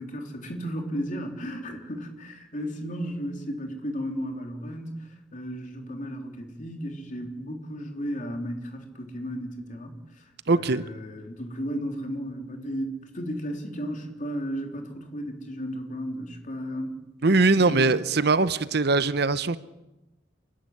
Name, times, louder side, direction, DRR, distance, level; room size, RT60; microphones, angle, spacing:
voice 1, 0.0-17.0 17.5-17.9, equal, 40° left, 3.4 m, -34 dB
voice 2, 10.5-10.8 17.2-19.6, right 3 dB, 55° right, 0.8 m, -21 dB
30.0 x 11.5 x 9.6 m
head